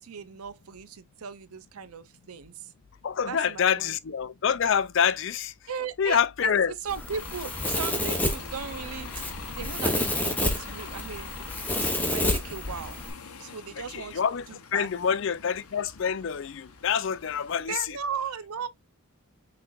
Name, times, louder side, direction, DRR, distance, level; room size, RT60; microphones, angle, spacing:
voice 1, 0.0-2.7 3.3-3.9 5.7-9.1 9.5-11.5 12.1-13.0 13.4-14.2 14.5-14.9 17.7-18.7, right 6 dB, 85° right, 0.6 m, -37 dB
voice 2, 3.0-5.5 6.0-6.7 13.9-14.5 14.7-18.0, left 7 dB, 55° left, 0.4 m, -26 dB
Bus, 6.8-17.6, left 5 dB, 90° left, 0.8 m, -43 dB
Domestic sounds home sounds, 6.9-13.1, left 1 dB, 10° left, 0.8 m, -30 dB
5.9 x 3.3 x 2.4 m
head